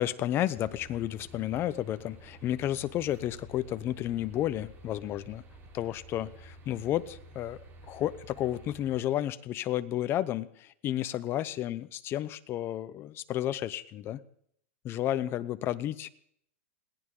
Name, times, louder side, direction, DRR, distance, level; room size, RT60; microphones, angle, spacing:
voice 1, 0.0-5.4 5.7-7.6 7.9-14.2 14.8-16.1, left 12 dB, 30° left, 14 dB, 0.9 m, -32 dB
sound 1, 0.5-9.0, right 1 dB, 30° right, 4.0 m, -51 dB
21.0 x 17.5 x 3.9 m, 0.68 s
supercardioid pair, 145°, 8 cm